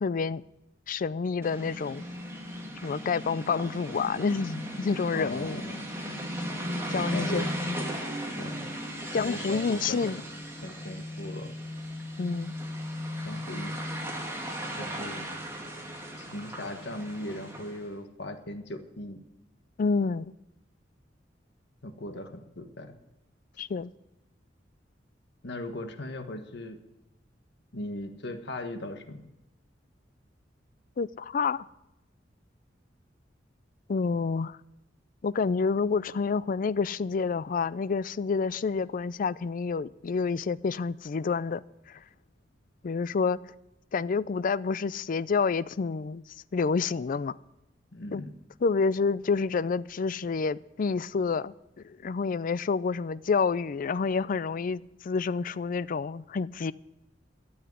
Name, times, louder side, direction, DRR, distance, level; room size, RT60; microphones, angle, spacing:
voice 1, 0.0-0.4 0.9-2.1 2.8-5.6 6.7-7.8 9.1-10.2 12.2-12.5 19.8-20.3 23.6-23.9 31.0-31.7 33.9-34.6 35.2-41.6 41.9-42.0 42.8-43.4 43.9-46.2 46.5-47.3 48.1-48.2 48.6-51.5 51.8-56.7, left 5 dB, 45° left, 0.4 m, -28 dB
sound 1, 1.4-17.9, equal, 15° right, 2.4 m, -36 dB
voice 2, 5.1-5.8 6.9-7.5 8.4-8.6 9.1-10.1 10.6-11.5 13.2-14.1 14.8-15.3 16.2-19.2 21.8-23.0 25.4-26.8 27.7-29.2 47.9-48.3, left 1 dB, 65° left, 1.4 m, -38 dB
13.0 x 8.0 x 9.5 m
head